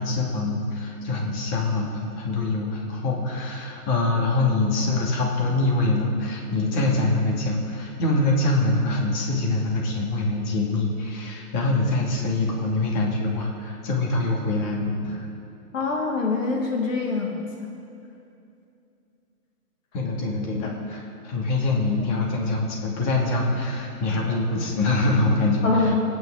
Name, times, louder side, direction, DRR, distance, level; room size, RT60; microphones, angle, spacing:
voice 1, 0.0-15.3 19.9-25.9, left 2 dB, 30° left, -1 dB, 2.4 m, -24 dB
voice 2, 15.7-17.7 20.6-20.7 25.6-26.0, left 4 dB, 55° left, 0 dB, 1.9 m, -25 dB
27.5 x 9.7 x 3.9 m, 2.6 s
hypercardioid pair, 145°, 46 cm